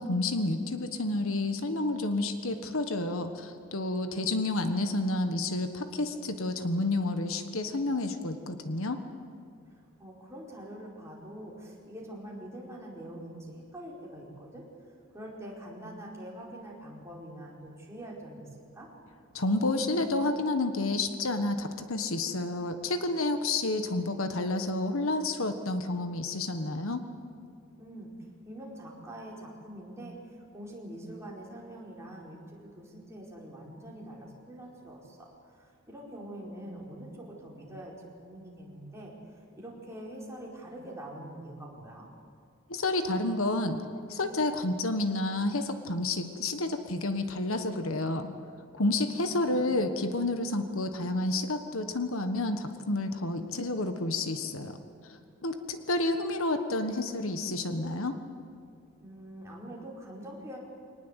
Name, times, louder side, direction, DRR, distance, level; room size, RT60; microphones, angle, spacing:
voice 1, 0.0-9.0 19.3-27.0 42.7-43.8 44.1-48.3 48.7-54.8 55.4-58.2, left 2 dB, 70° left, 8 dB, 1.4 m, -30 dB
voice 2, 10.0-14.6 15.1-18.9 27.8-28.1 28.4-39.1 39.5-42.1 49.1-49.2 49.5-50.0 59.0-60.6, right 1 dB, 15° right, -4 dB, 4.7 m, -44 dB
24.0 x 19.5 x 8.2 m, 2.5 s
head